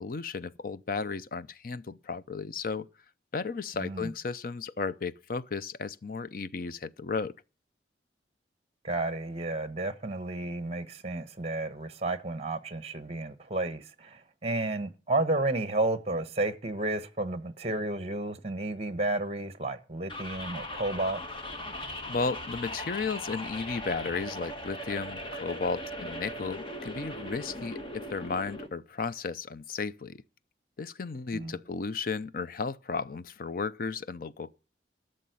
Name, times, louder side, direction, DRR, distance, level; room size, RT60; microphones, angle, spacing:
voice 1, 0.0-2.9 3.3-7.3 22.1-30.2 30.8-34.5, left 4 dB, 50° left, 0.5 m, -34 dB
voice 2, 3.8-4.1 8.8-21.2 31.3-31.5, right 2 dB, 35° right, 1.1 m, -32 dB
sound 1, 20.1-28.7, left 1 dB, 30° left, 1.5 m, -39 dB
12.5 x 6.6 x 9.3 m
head